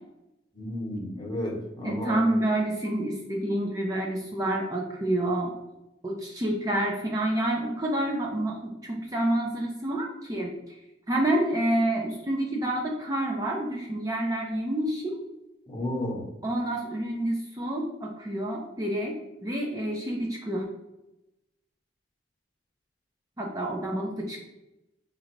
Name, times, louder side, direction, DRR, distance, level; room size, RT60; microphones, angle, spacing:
voice 1, 0.5-2.2 15.7-16.3, left 1 dB, 25° left, -2 dB, 1.0 m, -32 dB
voice 2, 1.8-5.5 6.0-10.6 11.1-15.2 16.4-20.7 23.4-24.4, right 1 dB, 20° right, -2 dB, 0.5 m, -28 dB
4.6 x 2.5 x 3.1 m, 0.93 s
head